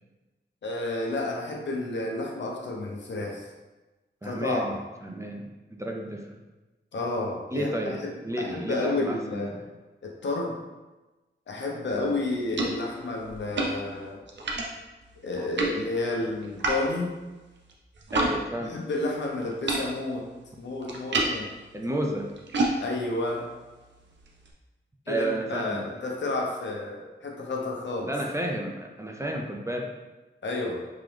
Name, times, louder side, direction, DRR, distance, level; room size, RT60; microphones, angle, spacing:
voice 1, 0.6-3.5 4.2-4.6 6.9-7.7 8.0-9.6 10.0-10.5 11.5-14.2 15.2-17.1 18.7-20.2 20.6-21.5 22.8-23.5 25.1-28.1 30.4-30.8, left 2 dB, 70° left, -1 dB, 0.8 m, -31 dB
voice 2, 4.2-4.8 5.0-6.4 7.5-9.6 11.9-12.1 18.1-18.8 21.7-22.3 25.1-25.8 28.1-30.0, right 1 dB, 15° right, 0 dB, 0.4 m, -32 dB
sound 1, 11.9-18.4 18.6-24.5, right 2 dB, 70° right, 0.6 m, -33 dB
3.7 x 2.9 x 3.3 m, 1.1 s
wide cardioid pair, 120°, 19 cm